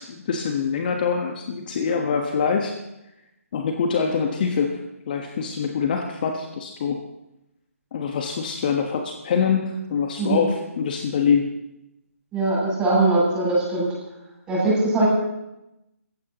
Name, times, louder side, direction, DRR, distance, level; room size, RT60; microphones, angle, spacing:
voice 1, 0.0-2.7 3.5-4.8 5.1-7.0 7.9-11.4, left 6 dB, 35° left, 3 dB, 1.4 m, -24 dB
voice 2, 12.3-13.9 14.5-15.1, right 2 dB, 10° right, -6 dB, 7.8 m, -21 dB
29.0 x 15.0 x 3.0 m, 0.90 s
figure-of-eight pair, 150°, 8 cm